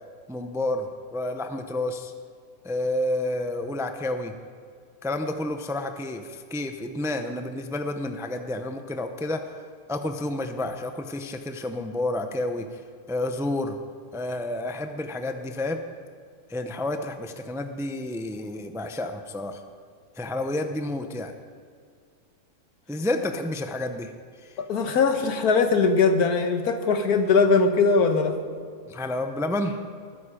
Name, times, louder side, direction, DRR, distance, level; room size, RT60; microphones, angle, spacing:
voice 1, 0.3-2.1 2.6-4.3 5.0-9.5 9.9-12.8 13.1-13.8 14.1-15.8 16.5-19.6 20.2-21.3 22.9-24.1 24.4-24.6 28.9-29.8, left 1 dB, 5° right, 7 dB, 0.4 m, -30 dB
voice 2, 24.6-28.4, left 4 dB, 85° left, 7 dB, 1.7 m, -21 dB
20.5 x 9.8 x 5.0 m, 2.2 s
omnidirectional pair, 1.6 m